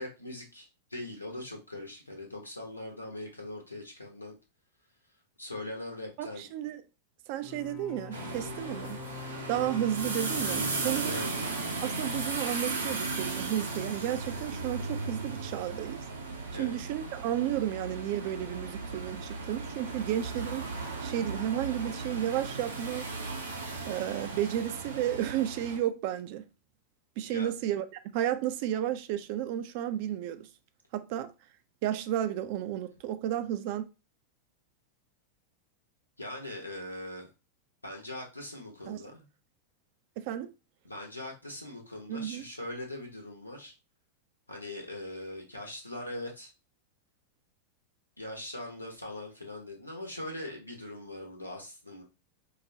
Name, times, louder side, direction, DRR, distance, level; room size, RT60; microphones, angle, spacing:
voice 1, 0.0-4.4 5.4-6.5 11.1-11.3 16.5-16.8 27.2-27.5 36.2-37.3 37.8-39.3 40.8-43.7 44.5-46.5 48.2-52.0, left 1 dB, 85° left, 1.0 m, -41 dB
voice 2, 6.2-6.8 7.3-9.0 9.5-11.2 11.8-16.0 16.5-20.7 21.0-23.1 23.9-26.4 27.2-30.5 30.9-31.3 31.8-33.9 38.9-39.0 40.2-40.5 42.1-42.5, right 11 dB, 45° right, 0.4 m, -32 dB
sound 1, 7.4-11.9, left 8 dB, 35° left, 0.5 m, -44 dB
sound 2, 8.1-25.8, right 3 dB, 75° right, 0.7 m, -36 dB
4.6 x 2.2 x 2.7 m
figure-of-eight pair, 90°, 0 cm